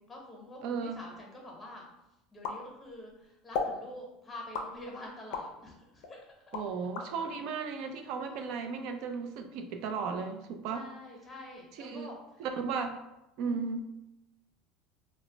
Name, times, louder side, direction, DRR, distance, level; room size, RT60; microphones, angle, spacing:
voice 1, 0.1-1.9 2.3-6.2 7.0-7.1 8.3-8.4 10.7-12.2 13.4-13.7, left 1 dB, 15° left, -1 dB, 0.8 m, -47 dB
voice 2, 0.6-1.0 6.5-10.9 11.8-12.1 12.4-13.0 13.4-13.9, right 5 dB, 65° right, 7 dB, 0.3 m, -35 dB
sound 1, 2.4-3.1 3.5-3.8 4.5-5.5 6.0-7.1, left 4 dB, 70° left, 0.4 m, -35 dB
2.1 x 2.0 x 3.8 m, 0.91 s
supercardioid pair, 115°, 0 cm